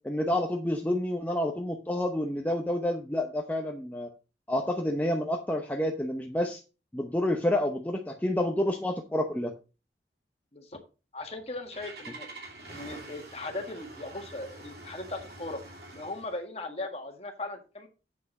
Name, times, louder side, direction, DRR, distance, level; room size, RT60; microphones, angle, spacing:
voice 1, 0.0-4.1 4.5-6.6 6.9-9.5, left 1 dB, 10° left, 2 dB, 0.7 m, -29 dB
voice 2, 11.1-12.3 12.7-15.6 15.9-17.9, left 2 dB, 35° left, 4 dB, 1.7 m, -38 dB
Engine starting, 11.2-16.4, right 2 dB, 60° right, 2.7 m, -46 dB
8.1 x 6.1 x 5.2 m, 0.33 s
head